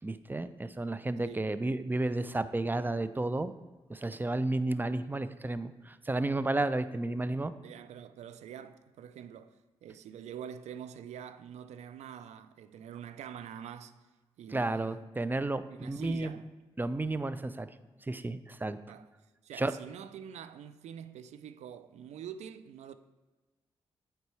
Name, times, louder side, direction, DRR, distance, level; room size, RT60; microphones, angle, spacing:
voice 1, 0.0-3.5 3.9-7.5 14.5-16.4 16.8-17.7 18.1-18.8 19.5-19.7, right 2 dB, 15° right, 0.4 m, -32 dB
voice 2, 7.6-9.5 9.8-13.9 14.4-15.0 15.7-16.5 18.9-19.1 19.4-22.9, right 9 dB, 80° right, 0.4 m, -45 dB
8.0 x 4.4 x 3.2 m
supercardioid pair, 45°, 11 cm